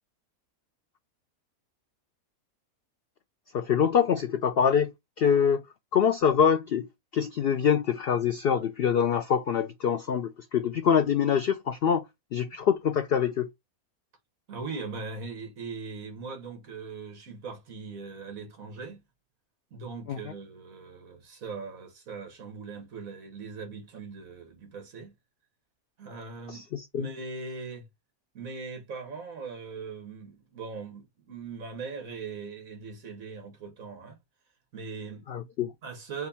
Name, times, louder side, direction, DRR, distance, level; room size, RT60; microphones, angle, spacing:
voice 1, 3.5-4.9 5.2-5.6 5.9-6.9 7.1-12.1 12.3-13.5 20.1-20.2 26.5-27.1 35.3-35.7, left 7 dB, 80° left, 0.5 m, -25 dB
voice 2, 14.5-19.0 19.7-25.1 26.0-26.7 26.9-27.9 28.3-34.2 34.7-35.2 35.8-36.3, right 4 dB, 65° right, 1.9 m, -40 dB
4.9 x 2.4 x 4.1 m
omnidirectional pair, 1.5 m